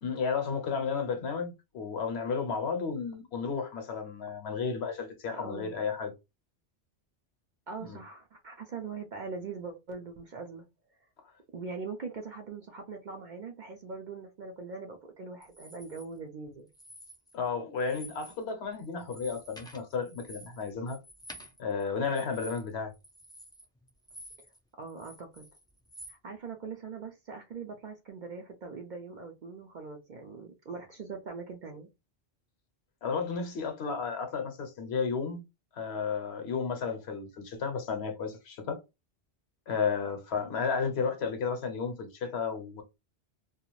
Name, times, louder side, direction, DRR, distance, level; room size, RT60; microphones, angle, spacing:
voice 1, 0.0-6.1 7.8-8.0 17.3-21.0 21.6-22.9 33.0-35.4 35.7-38.8 39.7-42.8, left 5 dB, 70° left, 0.9 m, -33 dB
voice 2, 5.3-5.8 7.7-10.7 11.5-16.7 24.8-25.5 26.1-31.9, right 4 dB, 55° right, 0.5 m, -42 dB
sound 1, 15.4-16.0 16.7-17.5 17.8-18.4 18.7-24.6 24.9-26.2, equal, 5° left, 0.3 m, -50 dB
2.4 x 2.3 x 3.0 m
omnidirectional pair, 1.2 m